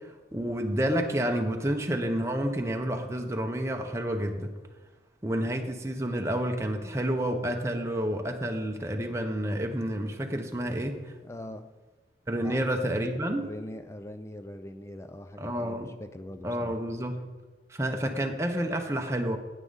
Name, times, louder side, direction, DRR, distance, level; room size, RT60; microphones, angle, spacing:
voice 1, 0.3-4.5 5.2-11.1 12.3-13.4 15.4-15.9 16.4-17.2 17.7-19.4, right 1 dB, 15° right, 3 dB, 0.7 m, -29 dB
voice 2, 11.2-11.7 12.4-12.6 13.4-16.8, left 1 dB, 15° left, 9 dB, 0.4 m, -42 dB
9.7 x 9.3 x 4.0 m, 1.2 s
head